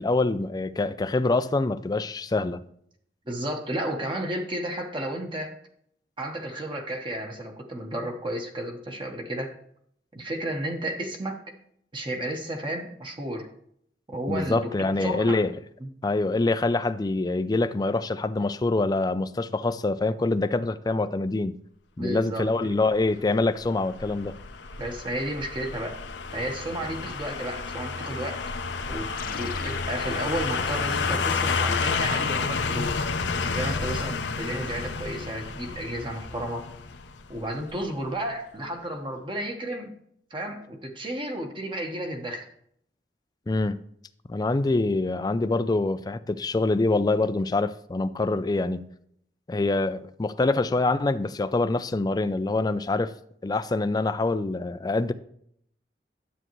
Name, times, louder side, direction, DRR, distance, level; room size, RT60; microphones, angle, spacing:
voice 1, 0.0-2.6 14.3-15.5 16.0-21.6 22.0-24.4 43.5-43.8 44.3-48.9 49.5-53.1 53.4-55.1, left 2 dB, 20° left, 0.4 m, -25 dB
voice 2, 3.3-5.5 6.2-9.5 10.1-11.4 11.9-13.5 14.1-14.7 15.0-15.4 15.8-15.9 22.0-22.5 23.2-23.3 24.8-26.0 26.3-28.4 28.9-33.0 33.4-36.7 37.3-39.9 40.3-42.5, right 1 dB, 30° right, 1.1 m, -32 dB
sound 1, 22.9-37.8 38.2-38.3, left 4 dB, 90° left, 0.8 m, -30 dB
sound 2, 29.2-33.8, left 5 dB, 55° left, 0.7 m, -44 dB
9.9 x 7.9 x 3.0 m
head